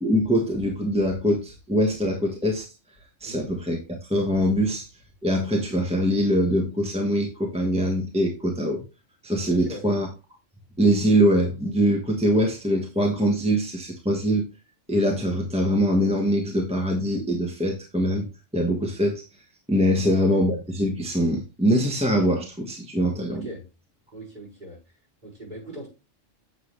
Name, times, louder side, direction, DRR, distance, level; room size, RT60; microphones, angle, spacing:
voice 1, 0.0-2.7 3.2-4.9 5.2-8.8 9.2-10.1 10.8-14.4 14.9-18.3 18.5-19.2 19.7-23.5, equal, 5° right, 1.3 m, -23 dB
voice 2, 9.5-9.8 19.9-20.2 23.3-23.7 24.1-24.8 25.2-25.9, right 1 dB, 40° right, 6.1 m, -40 dB
7.9 x 7.4 x 3.2 m
omnidirectional pair, 1.3 m